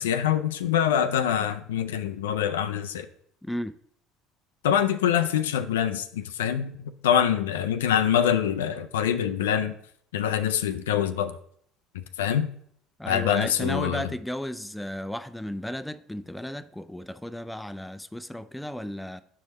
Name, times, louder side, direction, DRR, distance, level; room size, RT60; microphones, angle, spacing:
voice 1, 0.0-3.1 4.6-6.8 7.0-9.7 10.1-11.3 12.2-12.5 13.1-14.1, left 9 dB, 80° left, 0.3 m, -25 dB
voice 2, 3.4-3.7 13.0-19.2, equal, 5° left, 0.4 m, -34 dB
6.2 x 4.8 x 4.0 m
hypercardioid pair, 65°, 0 cm